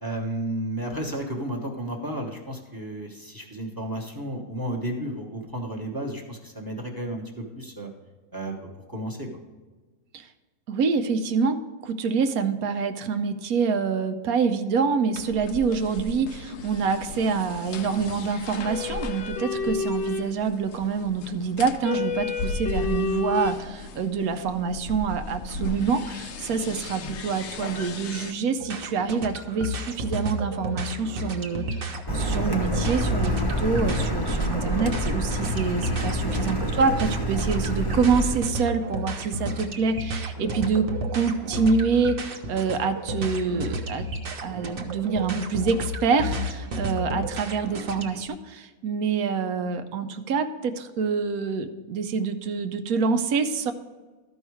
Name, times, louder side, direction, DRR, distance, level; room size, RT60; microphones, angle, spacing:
voice 1, 0.0-7.9 8.3-8.5 8.9-9.3 36.2-36.5, right 1 dB, 15° right, 1 dB, 1.0 m, -32 dB
voice 2, 10.7-44.1 44.4-53.7, right 5 dB, 75° right, 9 dB, 1.1 m, -26 dB
sound 1, 15.2-28.3, left 4 dB, 60° left, 0.8 m, -33 dB
sound 2, 28.6-48.2, equal, 45° right, 0.9 m, -32 dB
Car, 32.1-38.4, equal, 20° left, 0.8 m, -27 dB
13.0 x 5.4 x 4.7 m, 1.3 s
omnidirectional pair, 1.6 m